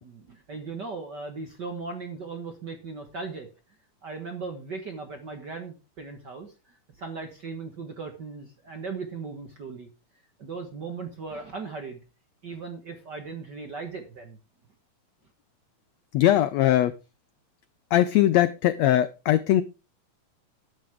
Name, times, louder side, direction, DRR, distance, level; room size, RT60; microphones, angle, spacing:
voice 1, 0.0-3.5 4.0-9.9 10.4-12.0 12.4-14.4, right 4 dB, 50° right, 6 dB, 1.3 m, -38 dB
voice 2, 16.1-16.9 17.9-19.6, left 13 dB, 90° left, 14 dB, 1.5 m, -20 dB
12.5 x 10.0 x 3.6 m, 0.29 s
omnidirectional pair, 3.8 m